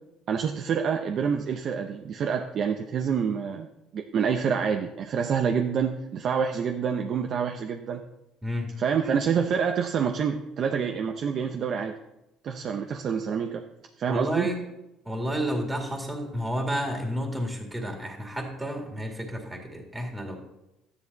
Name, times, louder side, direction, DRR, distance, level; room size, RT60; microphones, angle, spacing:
voice 1, 0.3-3.7 3.9-8.0 8.8-12.0 12.4-13.6 14.0-14.5, right 6 dB, 45° right, 4 dB, 0.8 m, -27 dB
voice 2, 14.1-14.6 15.0-20.4, equal, 10° right, 2 dB, 2.1 m, -31 dB
12.5 x 10.0 x 4.1 m, 0.89 s
cardioid pair, 130°, 0 cm